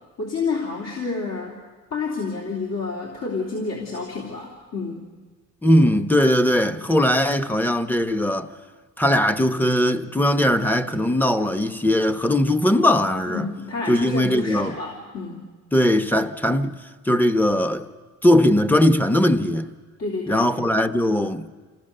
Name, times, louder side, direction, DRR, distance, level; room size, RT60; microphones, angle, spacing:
voice 1, 0.2-1.6 1.9-5.0 13.3-15.5 20.0-20.4, left 4 dB, 60° left, 3.2 m, -29 dB
voice 2, 5.6-8.5 9.0-13.5 13.9-14.8 15.7-16.7 17.0-17.9 18.2-19.7 20.3-21.5, left 1 dB, 5° left, 1.0 m, -19 dB
27.5 x 15.5 x 6.7 m
cardioid pair, 90°, 30 cm